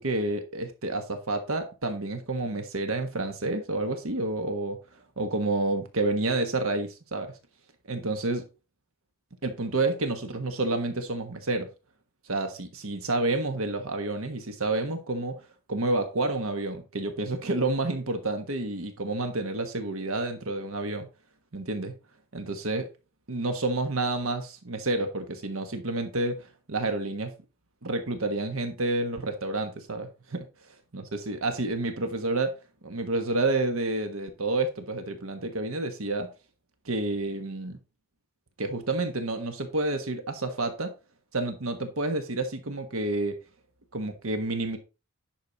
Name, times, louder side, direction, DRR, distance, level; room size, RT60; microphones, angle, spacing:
voice 1, 0.0-4.8 5.2-7.3 7.9-8.5 9.4-11.7 12.2-15.4 15.7-21.1 21.5-21.9 22.3-22.9 23.3-27.3 27.8-30.5 30.9-32.5 32.8-36.3 36.8-37.8 38.6-40.9 41.3-43.4 43.9-44.8, right 2 dB, 70° right, 1.4 m, -29 dB
10.5 x 6.3 x 4.0 m
head